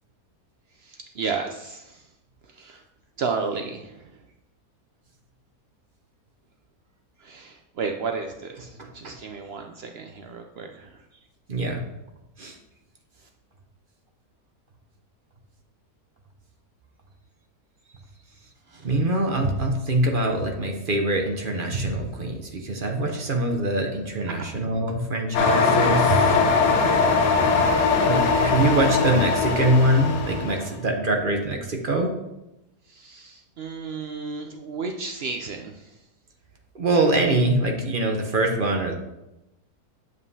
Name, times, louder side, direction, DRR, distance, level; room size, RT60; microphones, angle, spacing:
voice 1, 0.8-2.0 2.6-2.8 3.2-4.0 7.2-10.9 23.1-23.2 32.9-35.7, right 4 dB, 85° right, 4 dB, 0.5 m, -32 dB
voice 2, 8.8-9.1 11.5-11.8 12.4-12.6 18.8-26.4 28.0-32.1 36.7-38.9, right 1 dB, 45° right, 2 dB, 0.8 m, -24 dB
sound 1, 25.3-30.7, left 4 dB, 85° left, 1.4 m, -21 dB
8.0 x 7.3 x 2.7 m, 0.93 s
omnidirectional pair, 1.7 m